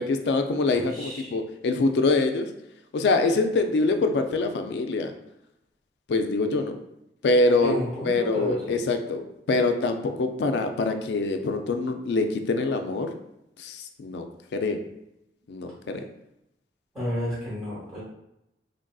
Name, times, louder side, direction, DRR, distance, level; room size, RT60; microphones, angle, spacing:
voice 1, 0.0-2.5 2.9-5.1 6.1-6.7 7.2-7.7 8.0-9.2 9.5-13.1 13.6-14.3 14.5-14.8 15.5-16.0, left 3 dB, 75° left, 7 dB, 0.3 m, -24 dB
voice 2, 0.7-1.4 7.6-8.8 15.8-15.9 16.9-18.0, left 1 dB, 15° right, -11 dB, 1.0 m, -31 dB
3.3 x 2.5 x 2.3 m, 0.83 s
head